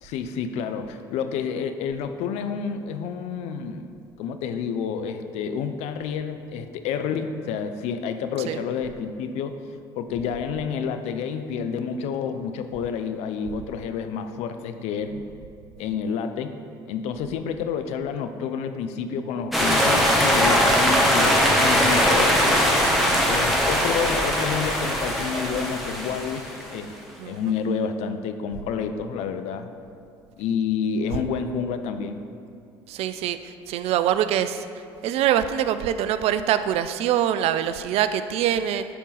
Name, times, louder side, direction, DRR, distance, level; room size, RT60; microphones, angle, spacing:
voice 1, 0.0-9.6 9.9-15.2 15.8-16.5 16.9-22.5 23.3-26.9 27.2-29.7 30.4-32.2, left 6 dB, 65° left, 8 dB, 0.5 m, -29 dB
voice 2, 8.4-8.7 27.2-27.5 32.9-34.7 35.0-38.9, right 10 dB, 60° right, 11 dB, 0.4 m, -24 dB
sound 1, 19.5-26.7, equal, ahead, 1.3 m, -20 dB
10.0 x 3.7 x 4.1 m, 2.4 s
hypercardioid pair, 65°, 12 cm